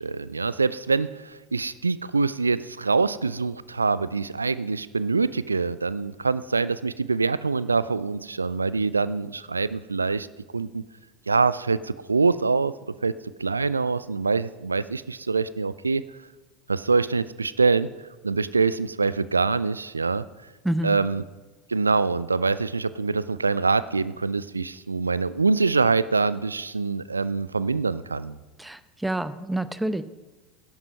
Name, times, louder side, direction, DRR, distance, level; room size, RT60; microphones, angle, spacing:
voice 1, 0.0-10.3 10.5-10.8 11.3-12.7 13.0-13.1 13.4-16.0 16.7-17.9 18.2-20.2 20.8-21.2 21.7-28.4, right 4 dB, 80° right, 17 dB, 0.4 m, -24 dB
voice 2, 20.6-21.0 28.6-30.0, right 1 dB, 5° right, 13 dB, 0.7 m, -28 dB
12.0 x 11.0 x 5.4 m, 1.2 s
figure-of-eight pair, 80°, 0 cm